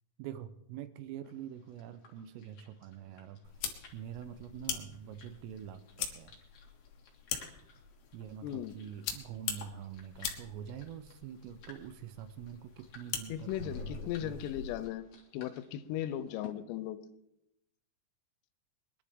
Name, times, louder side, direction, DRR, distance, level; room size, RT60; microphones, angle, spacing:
voice 1, 0.2-3.5 3.9-6.4 8.1-14.4, right 10 dB, 85° right, 11 dB, 3.4 m, -45 dB
sound 1, 1.2-16.5, left 6 dB, 50° left, 1.9 m, -58 dB
sound 2, 3.4-14.9, left 8 dB, 70° left, 2.4 m, -43 dB
voice 2, 8.4-8.7 13.3-15.0 15.3-17.0, left 11 dB, 90° left, 12 dB, 3.4 m, -37 dB
23.5 x 11.0 x 3.6 m, 0.84 s
omnidirectional pair, 5.8 m